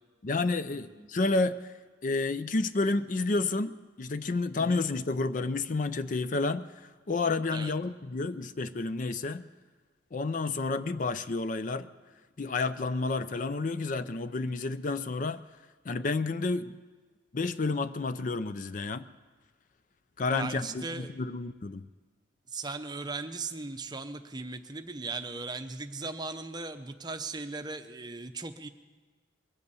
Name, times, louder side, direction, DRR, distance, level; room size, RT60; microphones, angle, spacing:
voice 1, 0.2-1.6 2.0-9.5 10.1-11.9 12.4-15.4 15.9-16.7 17.3-19.1 20.2-21.9, left 3 dB, 45° left, 13 dB, 0.5 m, -30 dB
voice 2, 0.7-1.1 4.6-4.8 7.5-7.7 20.3-21.1 22.5-28.7, right 3 dB, 20° right, 8 dB, 0.7 m, -38 dB
22.0 x 8.2 x 6.9 m, 1.4 s
head